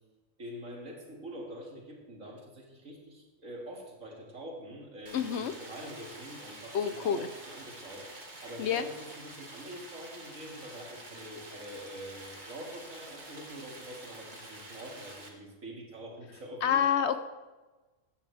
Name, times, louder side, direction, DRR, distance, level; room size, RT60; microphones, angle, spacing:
voice 1, 0.4-8.1 8.4-16.8, equal, 80° right, -1 dB, 2.8 m, -45 dB
voice 2, 5.1-5.5 6.7-7.3 8.6-8.9 16.6-17.2, left 8 dB, 65° left, 11 dB, 0.9 m, -28 dB
Stream, 5.1-15.3, right 2 dB, 35° right, 1.7 m, -48 dB
15.0 x 9.9 x 3.4 m, 1.2 s
omnidirectional pair, 1.3 m